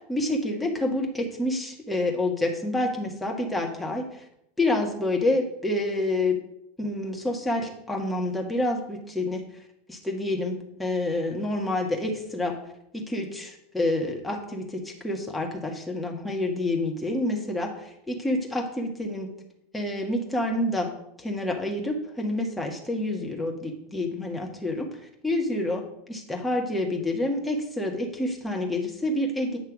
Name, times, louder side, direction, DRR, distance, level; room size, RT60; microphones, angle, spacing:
voice 1, 0.0-4.2 4.6-6.4 6.8-9.4 9.9-12.6 12.9-19.3 19.7-20.9 21.2-24.9 25.2-29.6, left 1 dB, 5° left, 0 dB, 1.5 m, -28 dB
8.6 x 3.2 x 6.2 m, 0.79 s
figure-of-eight pair, 85°, 0 cm